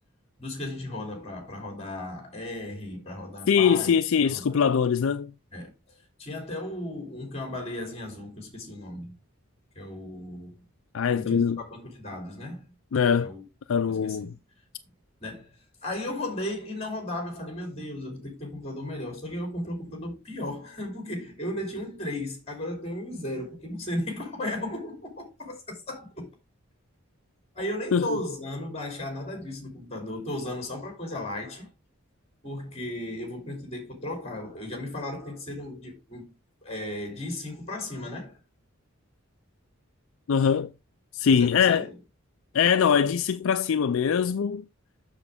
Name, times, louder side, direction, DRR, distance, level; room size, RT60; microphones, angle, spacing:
voice 1, 0.4-3.9 4.2-4.6 5.5-9.1 9.7-10.6 11.2-12.6 13.2-13.4 13.9-14.4 15.2-26.3 27.5-31.7 32.4-36.3 36.6-38.4 41.3-41.9, left 1 dB, 30° left, 2.7 m, -35 dB
voice 2, 3.5-5.3 10.9-11.6 12.9-13.3 13.7-14.3 27.9-28.0 40.3-40.7 41.1-41.9 42.5-44.6, left 7 dB, 65° left, 0.4 m, -22 dB
7.2 x 6.6 x 3.5 m
head